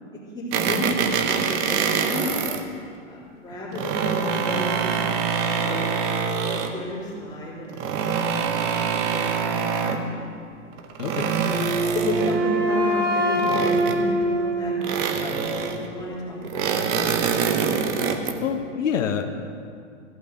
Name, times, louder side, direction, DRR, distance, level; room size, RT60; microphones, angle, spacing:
voice 1, 0.3-2.4 3.1-5.9 6.3-6.4 6.6-10.3 11.2-11.3 11.9-14.7 15.1-17.2, left 1 dB, 10° left, -8 dB, 3.3 m, -32 dB
sound 1, 0.5-2.6 3.5-6.8 7.7-10.1 10.7-12.5 13.4-14.2 14.8-15.9 16.4-18.4, right 6 dB, 25° right, 0.6 m, -25 dB
voice 2, 11.0-11.3 18.4-19.3, left 7 dB, 85° left, 5 dB, 1.0 m, -26 dB
Wind instrument woodwind instrument, 11.5-15.4, right 1 dB, 70° right, 2.6 m, -24 dB
14.5 x 5.2 x 8.1 m, 2.3 s
hypercardioid pair, 140°, 38 cm